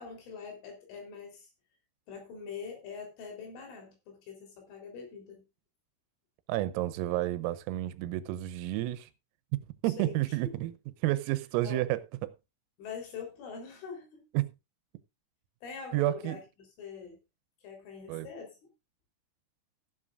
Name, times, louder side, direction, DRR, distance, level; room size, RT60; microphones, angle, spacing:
voice 1, 0.0-1.5 2.1-5.4 9.8-10.6 11.6-11.9 12.8-14.3 15.6-17.2 17.6-18.6, left 5 dB, 70° left, 6.1 m, -44 dB
voice 2, 6.5-9.1 9.5-10.7 11.0-12.3 14.4-14.5 15.9-16.4 18.1-18.3, right 16 dB, 90° right, 3.5 m, -30 dB
16.0 x 11.0 x 2.5 m
omnidirectional pair, 5.9 m